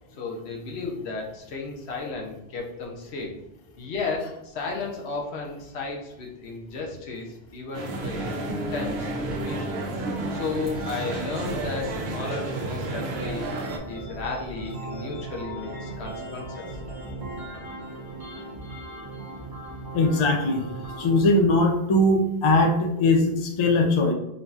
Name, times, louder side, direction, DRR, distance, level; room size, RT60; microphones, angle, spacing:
voice 1, 0.2-3.3 3.8-8.3 8.7-9.9 10.3-13.5 13.9-16.7, left 4 dB, 80° left, 0 dB, 1.0 m, -34 dB
sound 1, 7.7-13.8, right 2 dB, 75° right, 0.8 m, -31 dB
sound 2, 7.9-21.3, right 2 dB, 25° right, 0.6 m, -38 dB
voice 2, 19.9-20.7 21.0-24.1, left 2 dB, 55° left, 4 dB, 0.3 m, -20 dB
3.8 x 2.7 x 2.3 m, 0.83 s
omnidirectional pair, 1.1 m